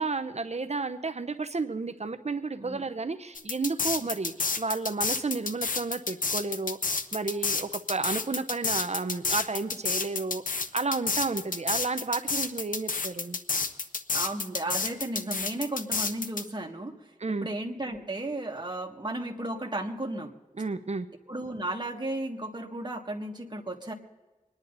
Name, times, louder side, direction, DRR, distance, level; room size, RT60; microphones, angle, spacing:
voice 1, 0.0-10.4 10.7-13.4 17.2-17.5 20.6-21.1, right 3 dB, 55° right, 10 dB, 0.8 m, -32 dB
sound 1, 3.4-16.4, left 4 dB, 90° left, 0.9 m, -29 dB
voice 2, 14.1-17.0 17.3-20.3 21.3-23.9, right 1 dB, 30° right, 1 dB, 2.0 m, -34 dB
26.0 x 10.5 x 4.0 m, 1.2 s
wide cardioid pair, 75°, 14 cm